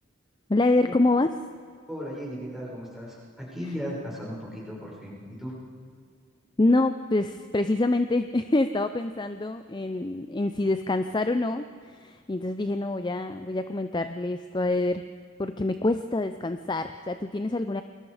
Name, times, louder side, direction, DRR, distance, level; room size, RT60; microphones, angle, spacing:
voice 1, 0.5-1.3 6.6-15.0 15.4-17.8, left 2 dB, 20° left, 9 dB, 0.5 m, -26 dB
voice 2, 1.9-5.5, equal, ahead, -5 dB, 6.1 m, -36 dB
28.5 x 21.0 x 5.0 m, 2.1 s
head